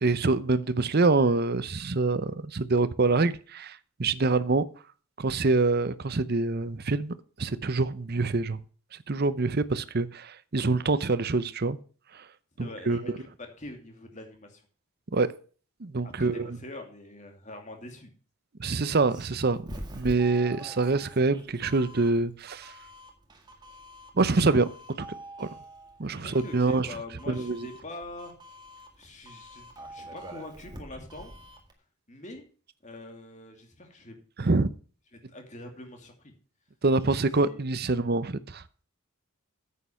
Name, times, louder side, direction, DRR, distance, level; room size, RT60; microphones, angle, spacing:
voice 1, 0.0-4.6 5.2-7.1 7.4-8.6 9.1-11.8 12.6-13.2 15.1-15.3 15.8-16.6 18.6-22.7 24.2-24.7 25.0-25.1 25.4-25.5 26.0-26.9 27.3-27.6 34.4-34.7 36.8-38.6, right 3 dB, 45° right, 0.7 m, -25 dB
voice 2, 12.6-14.6 16.0-18.1 26.2-28.3 29.0-31.3 32.1-32.4 32.8-34.2 35.1-36.3 37.1-37.6, left 2 dB, 35° left, 2.6 m, -44 dB
Doorbell, 18.9-31.7, right 1 dB, 20° right, 1.9 m, -46 dB
9.6 x 8.5 x 5.7 m
head